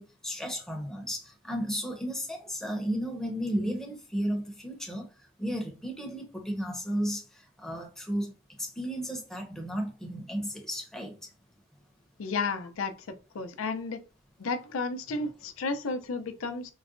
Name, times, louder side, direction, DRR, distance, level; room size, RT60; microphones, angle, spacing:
voice 1, 0.0-5.1 5.4-8.3 8.6-11.3, equal, ahead, 0.6 m, -34 dB
voice 2, 12.2-14.0 14.4-16.7, left 3 dB, 80° left, 0.5 m, -33 dB
3.8 x 2.1 x 2.4 m
head